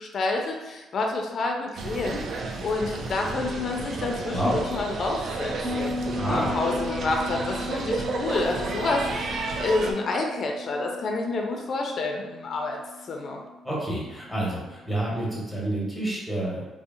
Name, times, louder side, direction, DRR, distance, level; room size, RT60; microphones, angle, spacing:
voice 1, 0.0-2.2 2.6-5.9 6.2-12.8 13.0-13.4, left 3 dB, 55° left, 2 dB, 0.4 m, -28 dB
sound 1, 1.8-9.9, right 3 dB, 60° right, 0.3 m, -32 dB
Bass guitar, 5.6-15.0, left 2 dB, 35° right, 1.0 m, -38 dB
voice 2, 6.2-6.5 13.6-16.7, right 1 dB, ahead, -5 dB, 1.0 m, -28 dB
2.7 x 2.0 x 2.5 m, 1.1 s
cardioid pair, 90°, 0 cm